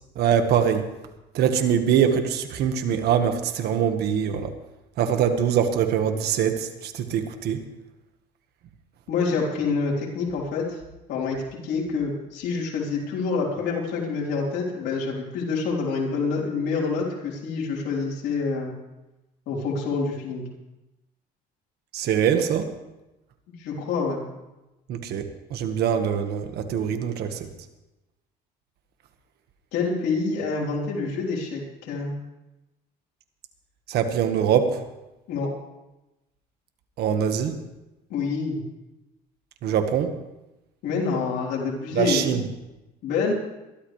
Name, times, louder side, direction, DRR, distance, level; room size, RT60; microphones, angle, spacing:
voice 1, 0.1-0.8 1.3-4.5 5.0-7.6 21.9-22.7 24.9-25.2 25.5-27.5 33.9-34.8 37.0-37.5 39.6-40.1 41.9-42.4, right 8 dB, 70° right, 7 dB, 1.6 m, -23 dB
voice 2, 9.1-10.8 11.1-18.7 19.5-20.4 23.5-24.2 29.7-32.1 35.3-35.5 38.1-38.6 40.8-42.3 43.0-43.3, left 4 dB, 80° left, -3 dB, 3.9 m, -27 dB
22.0 x 13.0 x 3.3 m, 0.99 s
cardioid pair, 110°, 17 cm